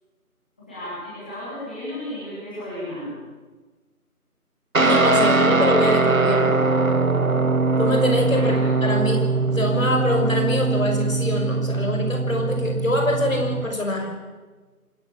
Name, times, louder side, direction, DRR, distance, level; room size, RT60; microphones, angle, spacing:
voice 1, 0.7-3.1 8.3-8.6, left 1 dB, 5° left, -12 dB, 3.1 m, -33 dB
Guitar, 4.7-13.7, right 3 dB, 60° right, 1.7 m, -21 dB
voice 2, 4.8-6.5 7.8-8.5 8.8-14.1, left 1 dB, 60° left, 2 dB, 5.9 m, -24 dB
25.5 x 12.0 x 8.5 m, 1.3 s
figure-of-eight pair, 175°, 45 cm